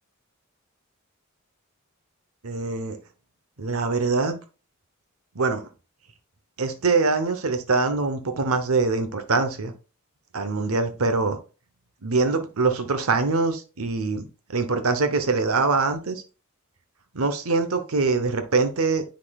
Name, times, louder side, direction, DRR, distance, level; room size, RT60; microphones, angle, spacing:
voice 1, 2.4-3.0 3.6-4.4 5.3-5.6 6.6-9.7 10.3-11.4 12.0-16.2 17.1-19.0, right 3 dB, 70° right, 8 dB, 0.9 m, -23 dB
9.9 x 4.1 x 2.4 m, 0.33 s
head